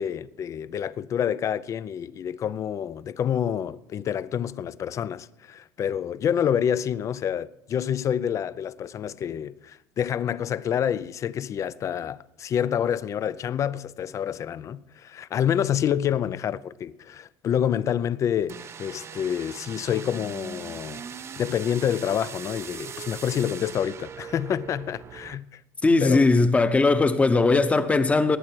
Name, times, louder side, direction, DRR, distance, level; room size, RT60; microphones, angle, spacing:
voice 1, 0.0-21.0 21.4-25.6 26.0-26.3, left 9 dB, 35° left, 0.5 m, -28 dB
sound 1, 18.5-25.4, right 7 dB, 30° right, 0.6 m, -40 dB
voice 2, 25.8-28.4, left 3 dB, 15° left, 0.9 m, -19 dB
19.0 x 8.6 x 4.6 m
cardioid pair, 120°, 8 cm